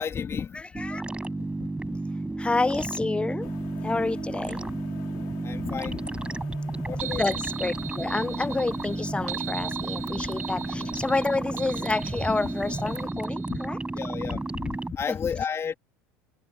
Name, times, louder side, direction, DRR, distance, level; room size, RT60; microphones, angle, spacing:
voice 1, 0.0-1.3 1.9-2.0 4.0-4.1 5.4-6.0 6.9-7.4 10.1-10.2 13.5-13.6 13.9-15.7, left 7 dB, 35° left, 3.1 m, -33 dB
voice 2, 0.5-1.0 2.4-3.5 3.8-4.7 7.2-13.8 15.1-15.2, left 3 dB, 15° left, 0.8 m, -29 dB
sound 1, 0.7-14.9, right 2 dB, 10° right, 5.3 m, -32 dB
sound 2, 3.4-13.1, left 26 dB, 70° left, 3.6 m, -45 dB
sound 3, 7.0-13.6, right 13 dB, 85° right, 1.1 m, -39 dB
hypercardioid pair, 75°, 8 cm